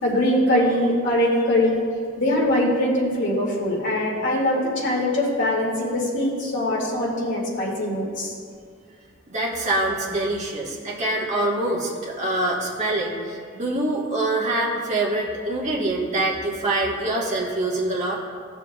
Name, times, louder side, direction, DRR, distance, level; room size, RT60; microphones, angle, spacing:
voice 1, 0.0-1.8 2.2-8.3, left 1 dB, 65° left, -6 dB, 2.4 m, -22 dB
voice 2, 9.3-18.2, right 2 dB, 35° right, -4 dB, 1.6 m, -25 dB
16.5 x 6.9 x 2.4 m, 2.1 s
head